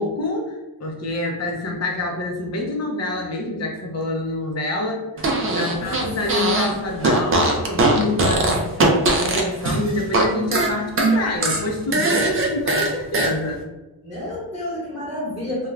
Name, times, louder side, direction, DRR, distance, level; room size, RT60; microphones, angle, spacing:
voice 1, 0.0-13.7, left 2 dB, 35° left, 1 dB, 0.6 m, -26 dB
Fart, 5.2-6.7 7.0-10.2 10.5-13.3, right 2 dB, 30° right, 0.4 m, -20 dB
voice 2, 5.5-6.1 6.4-6.5 14.0-15.7, left 1 dB, ahead, -11 dB, 1.1 m, -30 dB
2.3 x 2.3 x 3.1 m, 1.1 s
cardioid pair, 120°, 46 cm